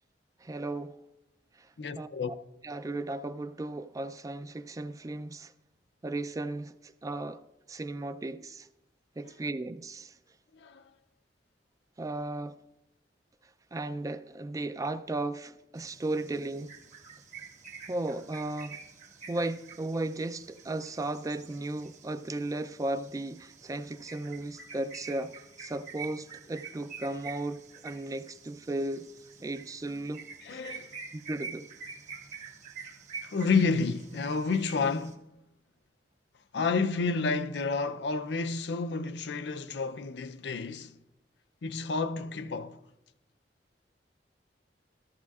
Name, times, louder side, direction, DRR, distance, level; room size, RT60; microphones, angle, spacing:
voice 1, 0.4-0.9 2.0-2.1 2.6-5.5 6.0-7.4 7.7-8.7 9.2-10.1 12.0-12.6 13.7-16.7 17.9-18.8 19.3-25.3 25.6-29.1 29.4-30.3 31.3-31.7, right 2 dB, 20° right, 0.3 m, -35 dB
voice 2, 1.8-2.3 10.6-10.8 30.4-30.9 33.2-35.3 36.5-40.9 41.6-42.8, left 4 dB, 70° left, 0.5 m, -30 dB
sound 1, 15.7-35.1, right 5 dB, 45° right, 1.1 m, -47 dB
14.0 x 13.5 x 2.4 m
head